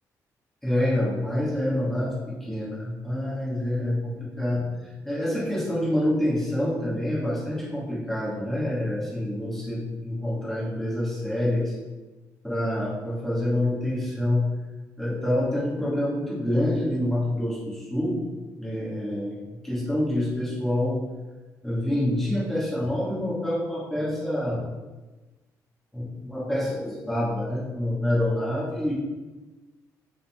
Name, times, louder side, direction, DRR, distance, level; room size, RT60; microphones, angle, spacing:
voice 1, 0.6-4.6 5.1-11.7 12.4-14.4 15.0-18.2 18.6-21.0 21.6-24.6 25.9-28.9, left 1 dB, 5° left, -7 dB, 2.0 m, -27 dB
5.5 x 4.0 x 4.4 m, 1.2 s
cardioid pair, 145°, 7 cm